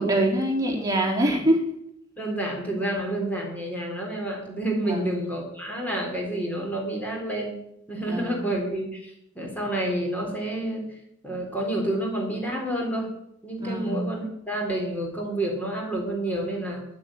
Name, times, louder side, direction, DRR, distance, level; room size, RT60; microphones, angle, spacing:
voice 1, 0.0-1.7 4.9-5.1 8.1-8.5 13.6-14.1, right 1 dB, 20° right, -1 dB, 3.5 m, -24 dB
voice 2, 2.2-7.6 7.9-10.8 11.2-13.1 13.4-16.8, right 1 dB, 10° left, 0 dB, 3.9 m, -29 dB
11.0 x 9.7 x 8.9 m, 0.77 s
head